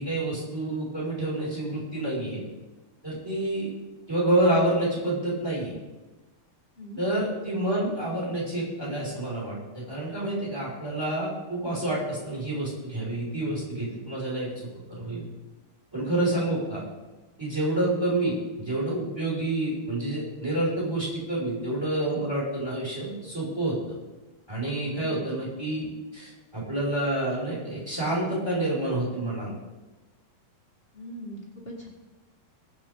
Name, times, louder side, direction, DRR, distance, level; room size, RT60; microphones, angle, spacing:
voice 1, 0.0-2.4 3.0-3.7 4.1-5.7 7.0-15.2 15.9-16.8 17.4-23.8 24.5-25.9 26.1-29.5, right 1 dB, 5° right, -5 dB, 5.0 m, -28 dB
voice 2, 30.9-31.9, equal, 60° left, -3 dB, 0.6 m, -40 dB
21.5 x 7.7 x 3.7 m, 1.1 s
omnidirectional pair, 4.2 m